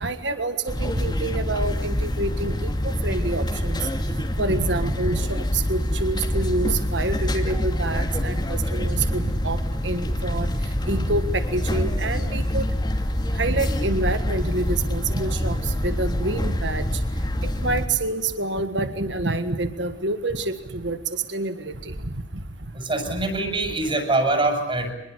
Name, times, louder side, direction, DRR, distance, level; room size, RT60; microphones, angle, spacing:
voice 1, 0.0-3.8 4.4-9.6 9.8-10.5 10.9-12.7 13.4-16.8 17.6-21.9 23.1-23.2, right 2 dB, 70° right, 10 dB, 1.6 m, -27 dB
sound 1, 0.7-17.9, left 1 dB, 25° left, 2.6 m, -26 dB
voice 2, 22.7-24.9, right 2 dB, 30° right, 5 dB, 6.7 m, -24 dB
25.5 x 22.0 x 8.2 m, 1.0 s
head